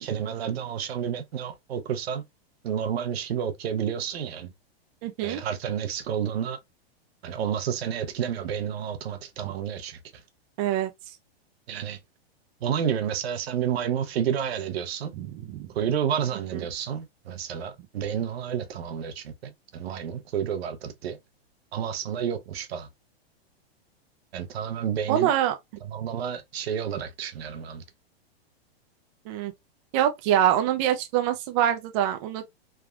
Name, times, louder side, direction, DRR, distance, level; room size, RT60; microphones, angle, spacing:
voice 1, 0.0-2.2 2.6-4.5 5.2-6.6 7.2-10.2 11.7-12.0 12.6-15.1 15.7-21.2 21.7-22.9 24.3-25.3 25.8-27.8, right 8 dB, 75° right, 0.8 m, -30 dB
voice 2, 5.0-5.4 9.4-9.5 10.6-10.9 15.2-15.7 16.5-16.6 25.1-25.5 29.3-29.5 29.9-32.5, right 11 dB, 35° right, 0.4 m, -25 dB
3.4 x 2.2 x 2.3 m
hypercardioid pair, 140°, 31 cm